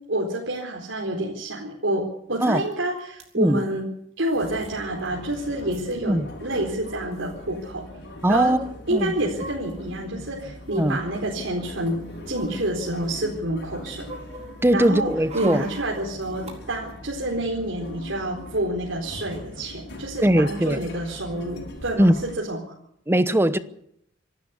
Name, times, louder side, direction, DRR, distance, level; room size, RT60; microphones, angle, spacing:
voice 1, 0.1-3.8 4.2-7.8 8.3-8.6 8.9-12.0 12.3-14.0 14.7-15.1 15.3-22.6, right 1 dB, 80° right, 4.3 m, -28 dB
sound 1, 2.7-2.8 3.0-3.3 4.3-4.7 5.1-5.2 5.3-5.9 6.8-6.9 7.1-7.3 8.9-10.0 10.6-11.0 11.6-13.3 13.6-16.5 16.9-17.0, right 2 dB, 35° right, 4.3 m, -42 dB
sound 2, 4.3-22.4, left 1 dB, 65° left, 6.5 m, -41 dB
voice 2, 8.2-8.6 8.9-9.1 10.8-11.0 14.6-15.6 20.2-20.8 22.0-22.2 23.1-23.6, right 1 dB, 15° right, 1.0 m, -20 dB
26.5 x 12.5 x 8.4 m
head